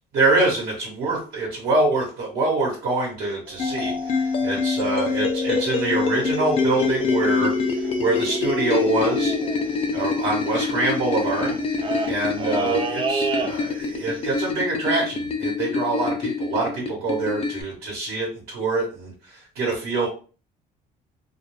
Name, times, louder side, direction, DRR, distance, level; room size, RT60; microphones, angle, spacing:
voice 1, 0.1-9.3 9.9-11.6 12.0-20.1, right 2 dB, 80° right, -3 dB, 1.0 m, -25 dB
sound 1, 3.5-5.8 6.1-6.3 6.6-7.1 7.3-7.4 7.6-14.0 14.2-14.5, right 4 dB, 30° right, 0.3 m, -31 dB
sound 2, 3.6-17.6, left 4 dB, 35° left, 0.5 m, -25 dB
2.2 x 2.2 x 3.0 m, 0.37 s
cardioid pair, 110°, 17 cm